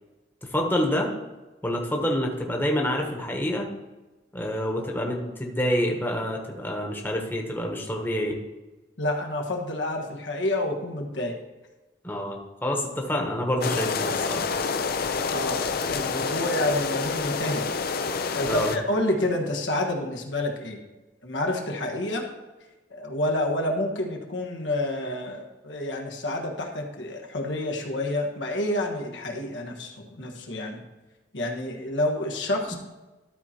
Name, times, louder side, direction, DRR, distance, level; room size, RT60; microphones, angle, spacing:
voice 1, 0.5-1.1 1.6-3.7 4.3-8.4 12.0-14.5 18.4-18.7 32.7-32.8, equal, 10° left, 0 dB, 1.1 m, -27 dB
voice 2, 9.0-11.4 15.3-17.6 18.3-20.8 21.2-22.3 22.9-30.8 31.3-32.8, left 1 dB, 85° left, 1 dB, 1.4 m, -28 dB
sound 1, 13.6-18.8, left 5 dB, 55° left, 0.6 m, -28 dB
13.0 x 4.4 x 4.3 m, 1.1 s
head